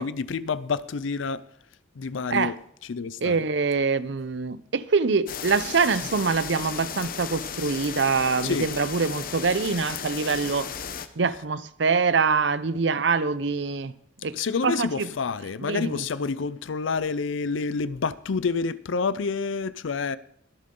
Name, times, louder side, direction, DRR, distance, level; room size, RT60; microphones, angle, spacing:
voice 1, 0.0-1.4 2.0-2.5 2.9-3.4 8.4-8.7 14.3-20.2, left 5 dB, 85° left, 0.5 m, -28 dB
voice 2, 3.2-10.7 11.2-13.9 14.2-14.4 14.6-15.1 15.6-16.0, right 4 dB, 65° right, 0.6 m, -24 dB
sound 1, 5.3-11.1, left 7 dB, 50° left, 0.8 m, -35 dB
23.0 x 7.6 x 3.8 m
head